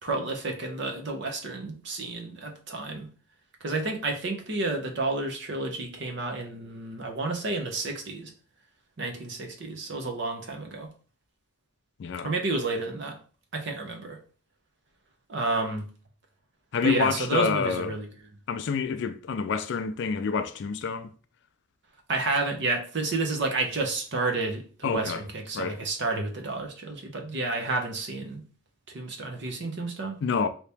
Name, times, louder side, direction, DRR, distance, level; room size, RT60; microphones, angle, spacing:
voice 1, 0.0-3.1 3.6-8.3 9.0-10.9 12.2-13.2 13.5-14.2 15.3-15.9 16.8-18.1 22.1-28.4 28.9-30.2, right 3 dB, 55° right, 0.6 m, -30 dB
voice 2, 12.0-12.3 16.7-18.0 18.5-21.1 24.8-25.2 25.5-25.8 30.2-30.5, left 5 dB, 55° left, 0.3 m, -27 dB
2.9 x 2.8 x 3.4 m
head